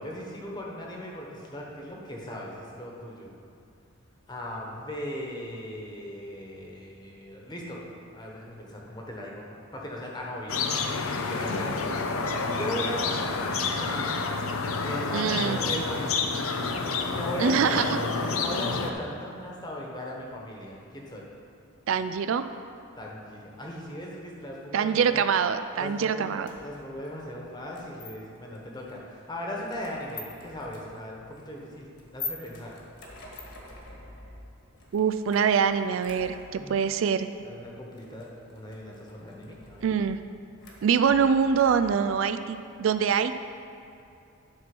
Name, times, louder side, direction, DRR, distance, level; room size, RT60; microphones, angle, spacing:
voice 1, 0.0-3.3 4.3-7.8 8.1-9.5 9.7-10.6 11.2-14.0 14.4-16.3 17.0-18.0 18.3-21.3 23.0-25.2 25.8-32.8 36.6-36.9 37.4-39.9, left 1 dB, 20° left, -2 dB, 1.2 m, -38 dB
sound 1, 10.5-18.9, left 4 dB, 85° left, 0.7 m, -29 dB
voice 2, 15.1-15.6 17.4-18.0 21.9-22.4 24.7-26.5 34.9-37.3 39.8-40.2 40.8-43.3, right 6 dB, 70° right, 10 dB, 0.3 m, -24 dB
sound 2, 26.5-42.2, left 3 dB, 55° left, 1.6 m, -46 dB
11.5 x 4.4 x 6.1 m, 2.5 s
head